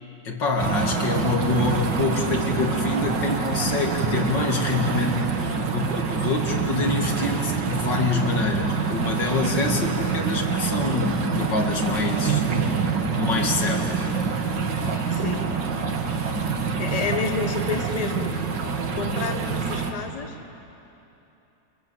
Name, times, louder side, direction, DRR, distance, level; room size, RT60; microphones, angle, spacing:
voice 1, 0.2-12.4 13.1-14.1 14.8-15.1, left 3 dB, 80° left, 2 dB, 2.9 m, -26 dB
sound 1, 0.6-19.9, right 5 dB, 80° right, 2.3 m, -26 dB
voice 2, 15.1-15.5 16.8-18.4 18.8-20.3, left 4 dB, 25° left, 4 dB, 1.3 m, -29 dB
28.0 x 23.0 x 7.9 m, 3.0 s
omnidirectional pair, 1.9 m